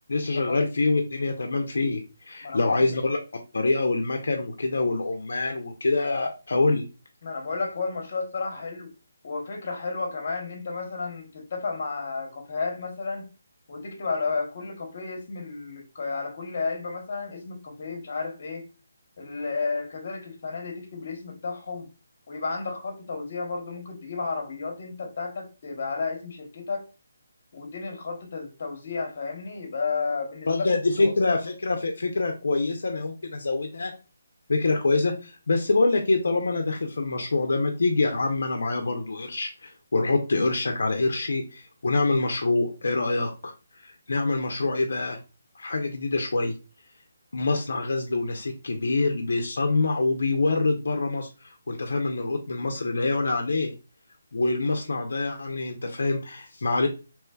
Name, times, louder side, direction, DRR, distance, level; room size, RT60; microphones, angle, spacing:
voice 1, 0.1-3.2 3.5-6.8 30.5-33.9 34.5-45.2 45.6-46.5 47.3-53.7 54.3-56.9, left 3 dB, 75° left, 0.5 m, -25 dB
voice 2, 2.4-3.0 7.2-8.9 9.2-13.3 13.7-18.7 19.2-21.9 22.3-26.9 27.5-31.1, left 4 dB, 50° left, 0.9 m, -32 dB
3.2 x 3.0 x 2.2 m
hypercardioid pair, 165°, 0 cm